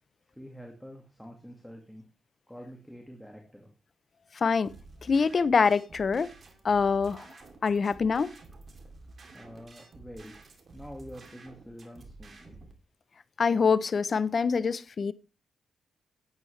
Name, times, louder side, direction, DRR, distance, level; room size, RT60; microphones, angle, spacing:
voice 1, 0.3-2.0 2.5-3.7 9.3-10.4 10.7-12.6, equal, ahead, 2.0 m, -46 dB
voice 2, 4.4-4.7 5.0-6.3 6.6-7.3 7.6-8.3 13.4-15.1, left 5 dB, 45° left, 0.6 m, -25 dB
sound 1, 4.6-12.7, right 3 dB, 45° right, 2.4 m, -51 dB
11.5 x 9.3 x 3.2 m
cardioid pair, 95°, 0 cm